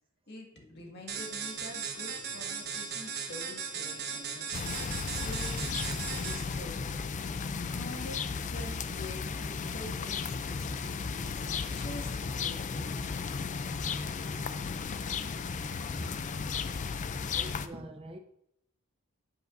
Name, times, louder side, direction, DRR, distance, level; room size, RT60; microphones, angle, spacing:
voice 1, 0.3-4.8 5.1-5.7 6.1-6.9 7.7-14.0 15.9-16.1, left 1 dB, 50° left, 1.8 m, -46 dB
sound 1, 0.5-16.9, left 2 dB, 75° left, 3.6 m, -58 dB
sound 2, 1.1-6.6, right 6 dB, 50° right, 1.2 m, -37 dB
sound 3, 4.5-17.7, left 5 dB, 35° left, 0.4 m, -35 dB
voice 2, 17.3-18.2, right 1 dB, 25° right, 0.6 m, -44 dB
10.5 x 8.1 x 2.6 m
head